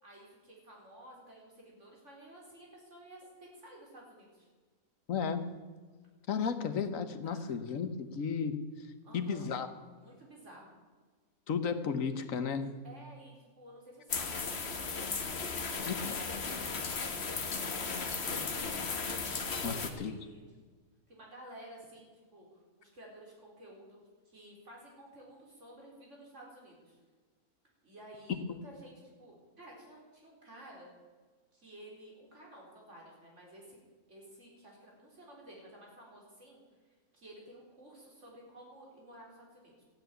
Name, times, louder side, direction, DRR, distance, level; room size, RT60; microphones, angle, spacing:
voice 1, 0.0-4.5 7.2-7.6 9.0-9.5 10.0-10.7 12.8-18.9 19.2-20.4 21.1-24.0 24.2-27.0 27.8-30.9 31.5-33.8 34.1-36.6 37.1-39.8, right 1 dB, 50° right, -2 dB, 4.5 m, -53 dB
voice 2, 5.1-5.5 6.3-8.6 9.1-9.7 11.5-12.7 15.8-16.1 19.6-20.1, left 6 dB, 65° left, 9 dB, 1.5 m, -34 dB
sound 1, 14.1-19.9, left 4 dB, 45° left, 1.5 m, -36 dB
13.5 x 9.7 x 9.3 m, 1.5 s
omnidirectional pair, 1.6 m